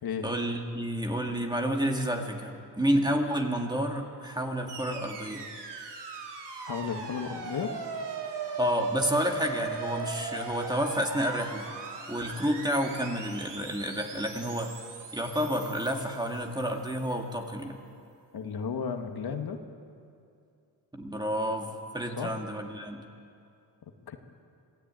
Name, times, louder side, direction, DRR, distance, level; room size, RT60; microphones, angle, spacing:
voice 1, 0.2-5.4 8.6-11.7 12.1-14.7 15.1-17.8 20.9-23.0, equal, 10° right, 2 dB, 2.1 m, -30 dB
sound 1, 4.7-16.9, right 5 dB, 75° right, 3.3 m, -39 dB
voice 2, 6.7-7.7 18.3-19.6 22.2-22.3 24.1-24.2, left 6 dB, 60° left, 5 dB, 1.8 m, -33 dB
26.5 x 16.5 x 9.1 m, 2.5 s
wide cardioid pair, 135°, 41 cm